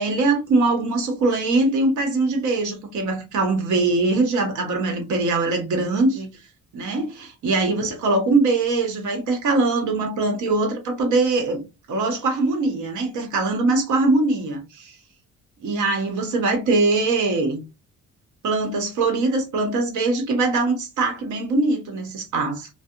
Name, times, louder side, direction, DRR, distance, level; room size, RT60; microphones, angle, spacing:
voice 1, 0.0-6.3 6.7-11.6 11.9-14.9 15.6-17.6 18.4-22.7, right 3 dB, 75° right, 1.0 m, -22 dB
2.7 x 2.1 x 2.4 m
cardioid pair, 90°, 30 cm